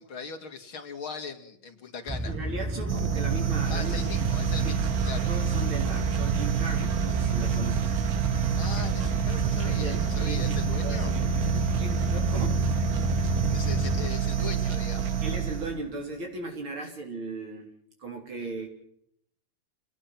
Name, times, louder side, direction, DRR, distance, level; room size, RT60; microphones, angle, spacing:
voice 1, 0.0-2.4 3.7-5.3 8.5-11.1 13.5-15.2, left 5 dB, 80° left, 6 dB, 3.3 m, -39 dB
sound 1, 2.1-14.1, right 1 dB, 15° right, 0.4 m, -31 dB
voice 2, 2.3-3.9 4.6-4.8 5.3-7.9 9.6-12.6 15.2-17.7 18.0-18.7, right 3 dB, 80° right, 1 dB, 4.4 m, -37 dB
sound 2, 2.9-15.9, right 8 dB, 50° right, 1.6 m, -28 dB
29.5 x 19.0 x 6.0 m, 0.71 s
omnidirectional pair, 2.2 m